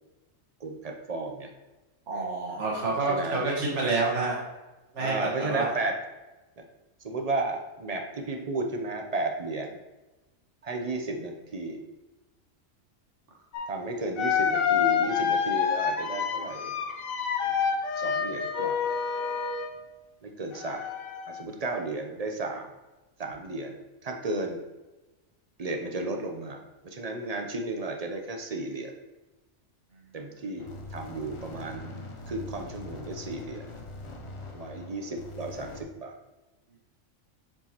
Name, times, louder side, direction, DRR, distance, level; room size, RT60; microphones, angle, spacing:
voice 1, 0.6-1.5 2.5-2.7 3.1-3.4 5.0-5.9 7.0-9.7 10.6-11.8 13.7-16.7 17.5-17.7 18.0-18.8 20.2-20.9 21.3-22.7 23.2-23.8 24.0-24.6 25.6-28.9 30.1-31.9 32.3-33.6 34.5-36.1, right 2 dB, 45° right, 3 dB, 0.5 m, -33 dB
voice 2, 2.1-4.4 4.9-5.7, right 3 dB, 60° right, -3 dB, 1.7 m, -28 dB
sound 1, 13.5-13.6 14.2-19.8 20.5-21.4, left 7 dB, 90° left, 1.1 m, -28 dB
sound 2, 30.6-35.8, left 3 dB, 55° left, 0.3 m, -42 dB
7.3 x 4.5 x 2.9 m, 1.1 s
omnidirectional pair, 1.4 m